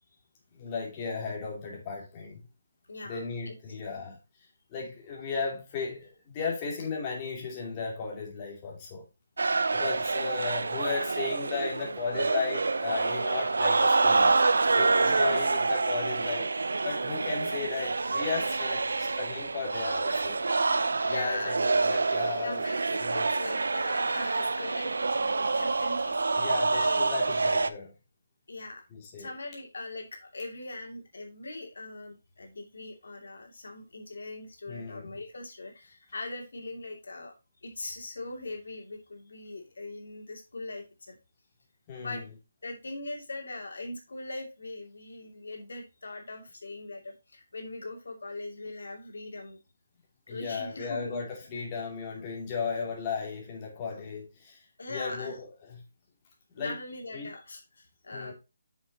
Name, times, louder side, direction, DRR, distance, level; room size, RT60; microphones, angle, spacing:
voice 1, 0.5-2.4 3.0-4.2 4.7-9.0 9.7-14.4 14.7-16.5 16.8-20.4 21.1-22.6 23.0-23.2 26.3-27.9 28.9-29.3 34.7-35.1 41.9-42.2 50.3-54.6 54.9-55.8 56.5-56.7 57.1-57.3 58.1-58.3, left 5 dB, 20° left, 2.7 m, -35 dB
voice 2, 2.9-3.5 15.0-15.6 20.9-21.6 22.4-27.1 28.5-28.8 29.2-41.2 42.0-42.2 42.6-49.6 50.3-51.6 54.8-55.4 56.6-58.3, left 2 dB, 80° left, 2.6 m, -41 dB
sound 1, 9.4-27.7, right 3 dB, 85° right, 0.7 m, -27 dB
7.2 x 6.6 x 2.9 m
hypercardioid pair, 165°, 0 cm